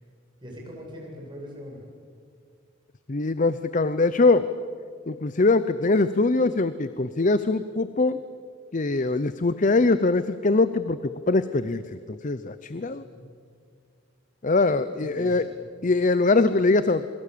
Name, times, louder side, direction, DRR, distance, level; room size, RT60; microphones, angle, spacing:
voice 1, 0.4-1.9 12.7-13.4 14.6-15.5, equal, 25° right, -2 dB, 7.9 m, -42 dB
voice 2, 3.1-4.5 5.1-8.2 8.7-11.0 11.3-11.8 12.1-13.0 14.4-15.4 15.8-17.0, left 3 dB, 40° left, 13 dB, 0.7 m, -22 dB
28.5 x 22.5 x 8.6 m, 2.1 s
head